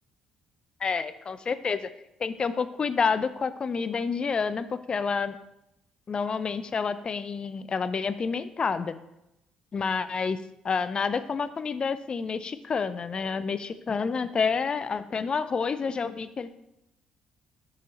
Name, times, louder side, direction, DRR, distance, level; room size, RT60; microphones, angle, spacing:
voice 1, 0.8-1.8 2.2-5.4 6.1-8.9 9.7-10.4 10.6-16.5, left 5 dB, 35° left, 13 dB, 0.4 m, -29 dB
6.4 x 5.8 x 4.0 m, 0.86 s
figure-of-eight pair, 45°, 3 cm